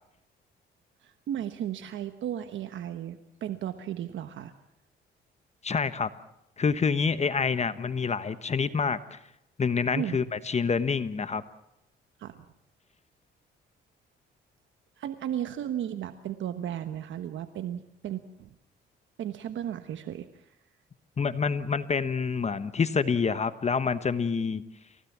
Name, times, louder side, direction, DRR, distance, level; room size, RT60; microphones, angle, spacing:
voice 1, 1.0-4.5 10.0-10.2 12.2-12.4 15.0-18.5 19.2-20.4, right 10 dB, 75° right, 10 dB, 1.2 m, -35 dB
voice 2, 5.6-6.1 6.6-9.2 9.6-11.4 21.2-24.6, left 5 dB, 35° left, 13 dB, 1.1 m, -27 dB
28.5 x 17.0 x 7.4 m, 0.83 s
cardioid pair, 90°, 20 cm